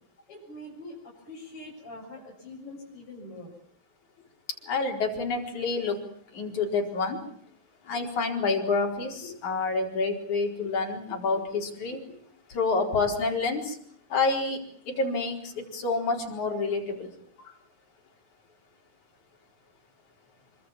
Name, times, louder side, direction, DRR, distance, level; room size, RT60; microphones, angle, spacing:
voice 1, 0.3-1.0 1.2-3.5, left 1 dB, 45° left, -4 dB, 7.9 m, -43 dB
voice 2, 4.7-6.0 6.4-7.2 7.9-12.0 12.5-13.7 14.1-14.6 15.0-15.4 15.7-17.1, left 4 dB, 70° left, 1 dB, 5.8 m, -28 dB
27.0 x 24.5 x 7.4 m, 0.62 s
omnidirectional pair, 3.5 m